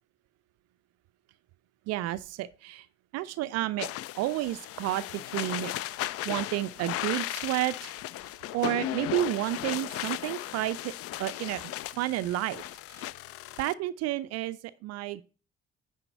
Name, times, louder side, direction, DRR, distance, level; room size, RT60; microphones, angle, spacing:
voice 1, 1.9-2.9 3.1-3.9 4.2-5.0 5.3-5.7 6.2-7.9 8.5-10.9 11.2-11.6 12.0-13.1 13.6-15.2, right 15 dB, 55° right, 0.4 m, -31 dB
sound 1, 3.8-13.7, left 14 dB, 45° left, 0.4 m, -36 dB
9.7 x 4.0 x 6.5 m
figure-of-eight pair, 45°, 32 cm